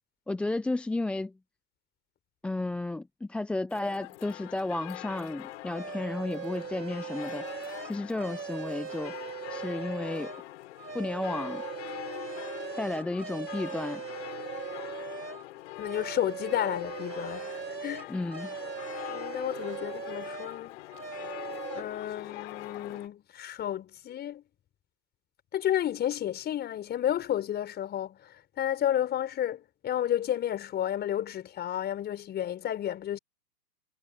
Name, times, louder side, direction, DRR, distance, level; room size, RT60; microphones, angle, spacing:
voice 1, 0.3-1.3 2.4-9.1 9.5-10.3 10.9-11.6 12.8-14.0 18.1-18.5, left 2 dB, ahead, 0.7 m, -33 dB
sound 1, 3.7-23.1, left 17 dB, 45° left, 4.5 m, -43 dB
sound 2, 5.6-10.4 10.8-15.4 15.8-20.6 20.9-21.8, right 7 dB, 85° right, 2.2 m, -40 dB
voice 2, 15.8-18.1 19.1-20.8 21.7-24.4 25.5-33.2, left 11 dB, 20° left, 5.7 m, -32 dB
hypercardioid pair, 125°, 48 cm